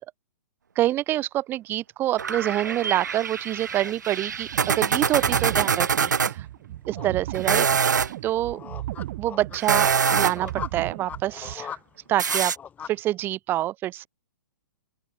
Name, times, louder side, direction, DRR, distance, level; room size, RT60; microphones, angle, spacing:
voice 1, 0.8-6.5 6.9-7.7 8.2-8.6 9.2-11.8 12.1-12.5 12.9-14.1, right 14 dB, 20° right, 0.6 m, -26 dB
sound 1, 2.2-13.0, left 8 dB, 15° left, 3.5 m, -42 dB
sound 2, 2.2-6.3 7.3-8.1 9.5-10.5 12.2-12.6, right 6 dB, 65° right, 2.3 m, -24 dB
sound 3, 4.3-11.5, right 15 dB, 40° right, 1.3 m, -36 dB
open air
figure-of-eight pair, 115°, 11 cm